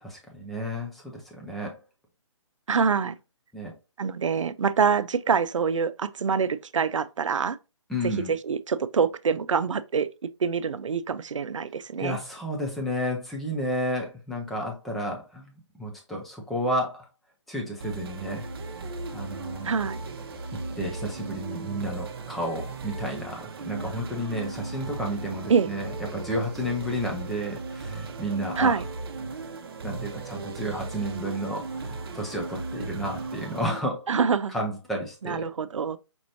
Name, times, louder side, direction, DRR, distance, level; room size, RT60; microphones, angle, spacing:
voice 1, 0.0-1.8 3.5-3.7 7.9-8.3 12.0-17.1 17.5-18.5 19.1-19.7 20.5-28.8 29.8-34.1 34.5-35.5, equal, ahead, 0.3 m, -32 dB
voice 2, 2.7-3.2 4.0-7.6 8.3-10.1 10.4-12.2 19.6-20.0 25.5-25.7 28.6-28.8 34.1-34.6 35.2-36.0, right 6 dB, 85° right, 0.5 m, -25 dB
sound 1, 17.8-33.8, right 3 dB, 50° right, 0.7 m, -37 dB
5.2 x 3.0 x 2.6 m
hypercardioid pair, 155°, 16 cm